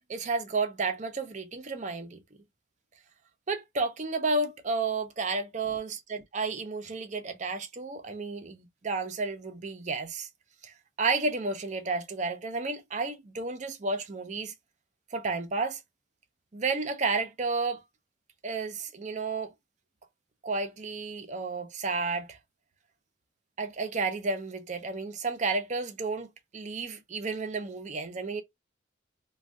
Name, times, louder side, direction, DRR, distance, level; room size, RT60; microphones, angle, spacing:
voice 1, 0.1-2.2 3.5-10.3 10.6-10.7 11.0-14.5 15.1-15.8 16.5-17.8 18.4-19.5 20.4-22.4 23.6-28.4, right 3 dB, 40° right, 0.5 m, -32 dB
2.5 x 2.3 x 3.4 m
head